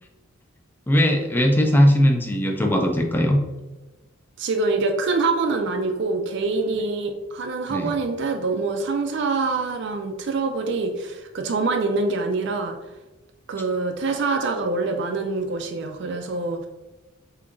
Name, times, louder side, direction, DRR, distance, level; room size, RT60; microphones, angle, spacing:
voice 1, 0.9-3.4 7.7-7.9, equal, 10° left, 2 dB, 0.4 m, -19 dB
voice 2, 4.4-12.8 13.5-16.7, right 3 dB, 55° right, 5 dB, 0.4 m, -25 dB
6.7 x 2.8 x 2.5 m, 1.1 s
head